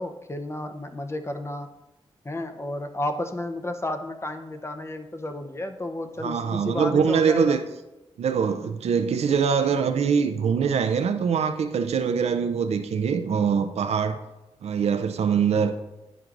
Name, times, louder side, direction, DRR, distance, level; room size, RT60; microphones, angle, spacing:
voice 1, 0.0-1.7 2.2-7.6, left 1 dB, 25° left, 7 dB, 0.8 m, -32 dB
voice 2, 6.2-7.6 8.2-14.2 14.6-15.7, right 6 dB, 80° right, 8 dB, 0.5 m, -23 dB
11.0 x 4.5 x 2.5 m, 0.99 s
cardioid pair, 45°, 11 cm